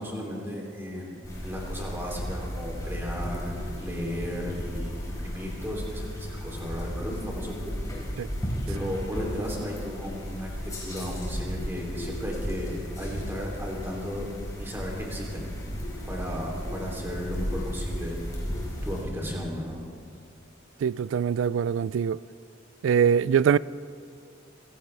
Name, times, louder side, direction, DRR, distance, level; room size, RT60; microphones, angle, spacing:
voice 1, 0.0-7.7 8.7-14.3 14.6-15.5 16.1-18.2 18.8-19.8, equal, 10° right, 3.1 m, -35 dB
sound 1, 1.2-19.0, equal, 20° left, 4.4 m, -34 dB
voice 2, 20.8-22.2 22.8-23.6, right 7 dB, 85° right, 0.3 m, -23 dB
27.0 x 16.0 x 3.4 m
head